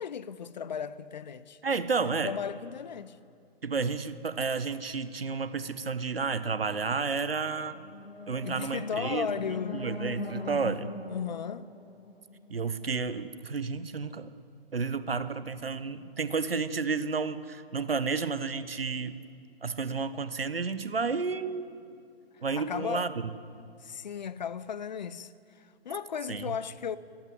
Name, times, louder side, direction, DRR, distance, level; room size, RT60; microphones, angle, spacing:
voice 1, 0.0-1.6 2.0-3.2 8.4-9.8 11.1-11.7 22.6-23.1 23.8-25.3 25.6-27.0, left 7 dB, 45° left, 0.8 m, -35 dB
voice 2, 1.6-2.3 3.6-7.8 8.3-10.9 12.5-14.3 14.7-19.1 19.6-21.7 22.4-23.1 26.3-26.5, right 4 dB, 70° right, 1.3 m, -31 dB
sound 1, 7.7-12.8, left 1 dB, 75° left, 2.1 m, -40 dB
26.0 x 15.0 x 9.6 m
figure-of-eight pair, 130°, 30 cm